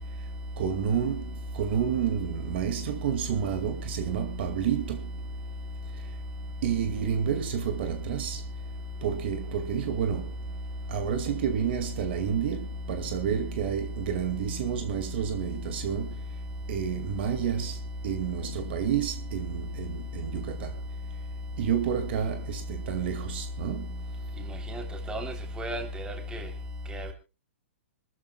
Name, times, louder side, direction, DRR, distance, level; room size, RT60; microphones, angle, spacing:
voice 1, 0.6-5.1 6.6-8.4 9.0-10.3 10.9-16.1 16.7-17.8 18.0-20.7 21.6-23.9, right 8 dB, 55° right, 2.2 m, -30 dB
voice 2, 24.5-24.8 25.1-26.5 26.9-27.1, equal, 10° right, 3.4 m, -34 dB
26.0 x 13.5 x 2.4 m
hypercardioid pair, 130°, 7 cm